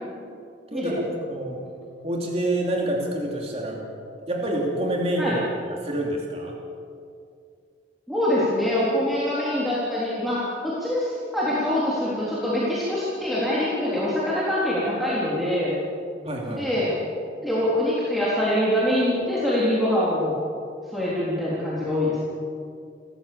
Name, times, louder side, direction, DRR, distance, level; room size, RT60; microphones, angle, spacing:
voice 1, 0.7-1.6 2.0-3.8 4.3-6.5 16.2-16.6, right 1 dB, 30° right, -1 dB, 3.0 m, -27 dB
voice 2, 8.1-15.7 16.4-16.9 17.4-20.4 20.9-22.2, left 1 dB, ahead, -9 dB, 3.8 m, -24 dB
29.0 x 14.5 x 7.0 m, 2.4 s
head